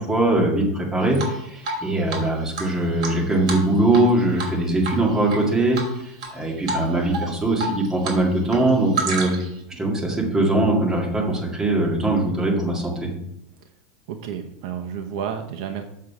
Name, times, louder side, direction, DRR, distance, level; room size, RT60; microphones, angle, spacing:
voice 1, 0.0-5.8 6.3-9.3 9.7-13.1, right 2 dB, 10° right, -1 dB, 2.0 m, -21 dB
Drip, 1.1-1.8 2.1-2.2 2.5-4.1 4.4-4.6 4.8-5.4 5.7-6.3 6.7-6.8 7.1-8.2 8.4-9.6, right 4 dB, 70° right, 2.7 m, -29 dB
voice 2, 14.1-15.8, right 8 dB, 55° right, 5 dB, 0.8 m, -31 dB
7.5 x 6.5 x 4.9 m, 0.80 s
supercardioid pair, 160°, 4 cm